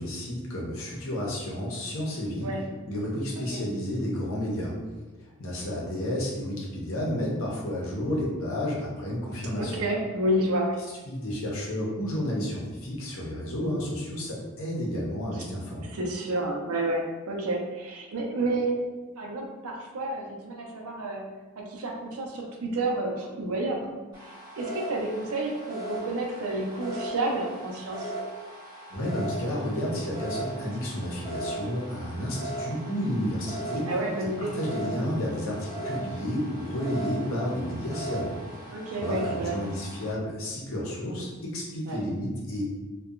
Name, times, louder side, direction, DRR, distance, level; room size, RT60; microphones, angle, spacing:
voice 1, 0.0-2.5 2.9-4.8 5.2-9.8 11.0-15.9 28.9-34.0 34.4-38.4 38.9-42.6, equal, 65° left, -3 dB, 0.7 m, -31 dB
voice 2, 9.6-10.8 15.9-18.7 19.2-21.2 21.6-23.9 24.2-28.1 33.9-34.6 38.7-39.6 41.9-42.0, right 1 dB, 80° right, 0 dB, 0.5 m, -30 dB
sound 1, 24.1-40.1, right 1 dB, 20° right, 1.0 m, -38 dB
2.7 x 2.2 x 2.4 m, 1.2 s
head